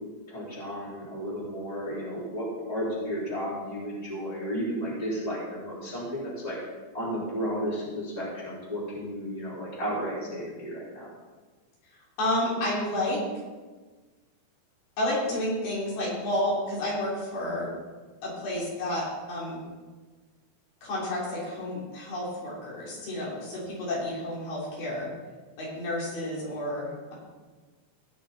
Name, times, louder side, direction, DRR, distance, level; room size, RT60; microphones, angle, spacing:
voice 1, 0.3-6.6 6.9-11.1, equal, 10° left, -7 dB, 3.9 m, -33 dB
voice 2, 12.2-13.2 15.0-17.7 18.2-19.6 20.8-25.1 25.6-27.1, left 1 dB, 80° left, -6 dB, 5.4 m, -30 dB
18.5 x 6.5 x 4.3 m, 1.3 s
omnidirectional pair, 4.4 m